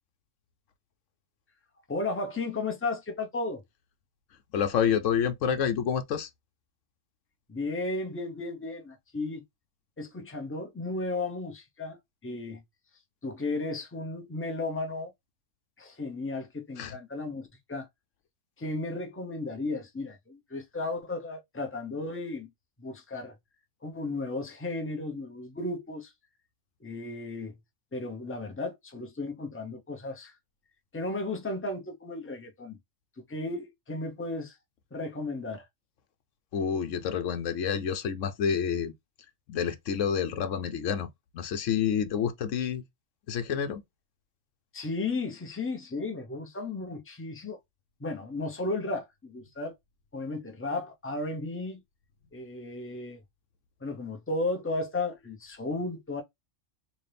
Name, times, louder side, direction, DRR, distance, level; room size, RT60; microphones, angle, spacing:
voice 1, 1.9-3.6 7.5-9.4 10.0-12.6 13.2-15.1 15.8-17.9 18.6-22.5 22.8-23.4 23.8-26.1 26.8-27.6 27.9-30.3 30.9-32.8 33.2-34.6 34.9-35.7 44.7-47.6 48.0-49.8 50.1-51.8 52.3-53.2 53.8-56.2, left 2 dB, 10° left, 0.8 m, -34 dB
voice 2, 4.5-6.3 16.8-16.9 36.5-38.9 39.5-41.1 41.3-42.8 43.3-43.8, left 7 dB, 80° left, 1.1 m, -28 dB
4.1 x 2.6 x 3.4 m
omnidirectional pair, 1.3 m